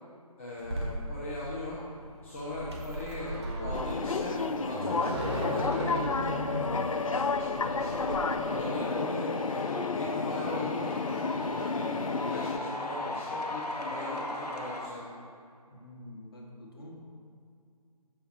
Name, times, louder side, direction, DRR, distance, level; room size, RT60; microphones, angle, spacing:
voice 1, 0.4-1.8 2.2-8.1 8.5-10.9 11.5-12.0 12.2-15.1, left 2 dB, 20° left, -8 dB, 0.6 m, -40 dB
sound 1, 0.6-8.2, equal, 45° right, 1.1 m, -36 dB
sound 2, 3.7-12.6, left 4 dB, 60° left, 0.4 m, -31 dB
sound 3, 7.8-14.9, left 1 dB, 85° left, 0.9 m, -37 dB
voice 2, 15.7-17.0, left 1 dB, 40° left, -1 dB, 1.2 m, -47 dB
6.9 x 5.7 x 4.3 m, 2.5 s
figure-of-eight pair, 155°, 20 cm